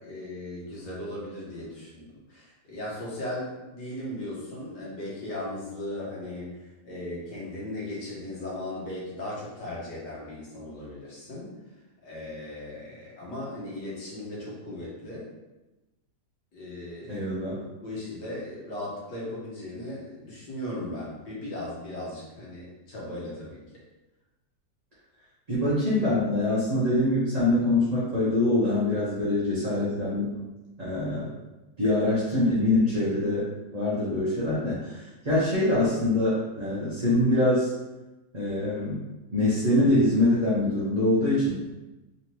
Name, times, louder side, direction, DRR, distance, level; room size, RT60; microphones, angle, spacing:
voice 1, 0.0-6.6 6.8-11.5 12.0-15.3 16.5-17.3 17.6-23.6, left 1 dB, 90° left, -7 dB, 1.9 m, -37 dB
voice 2, 17.1-17.6 25.5-30.3 30.8-31.3 31.8-33.4 33.7-37.7 38.3-39.0 39.3-41.5, left 1 dB, 30° right, -9 dB, 0.8 m, -24 dB
4.0 x 3.3 x 2.9 m, 1.1 s
omnidirectional pair, 1.8 m